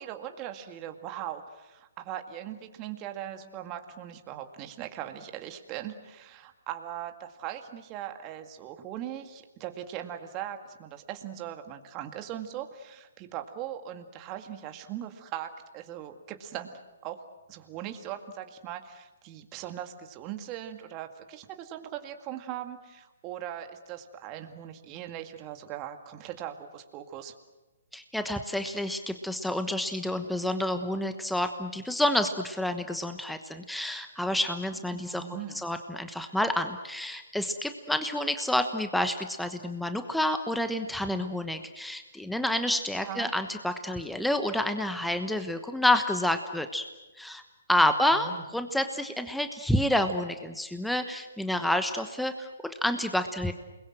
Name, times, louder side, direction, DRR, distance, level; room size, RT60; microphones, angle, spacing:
voice 1, 0.0-16.7 17.0-27.3 34.9-35.6 43.0-43.3 47.8-48.4, right 11 dB, 30° right, 6 dB, 2.0 m, -40 dB
voice 2, 27.9-35.2 35.5-46.8 47.2-47.4 47.7-53.5, left 1 dB, ahead, 8 dB, 1.1 m, -29 dB
28.5 x 21.5 x 7.8 m, 1.1 s
hypercardioid pair, 135°, 0 cm